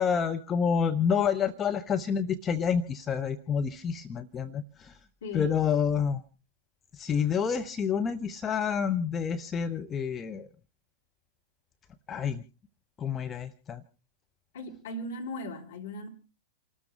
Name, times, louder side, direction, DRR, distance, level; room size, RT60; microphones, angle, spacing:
voice 1, 0.0-5.0 5.3-6.2 6.9-10.5 12.1-12.4 13.0-13.8, left 7 dB, 20° left, 0.8 m, -28 dB
voice 2, 5.2-5.6 14.5-16.1, left 2 dB, 60° left, 3.3 m, -37 dB
29.0 x 13.0 x 3.2 m
figure-of-eight pair, 100°, 0 cm